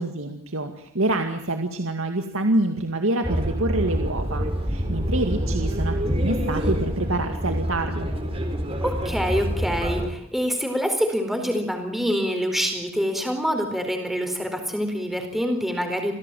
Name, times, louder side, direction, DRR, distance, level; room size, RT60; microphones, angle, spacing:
voice 1, 0.0-8.1, right 2 dB, 75° right, 5 dB, 2.1 m, -26 dB
sound 1, 3.2-10.1, equal, 30° right, 4.0 m, -26 dB
voice 2, 8.8-16.1, equal, ahead, 4 dB, 4.4 m, -26 dB
28.0 x 17.0 x 9.3 m, 0.70 s
head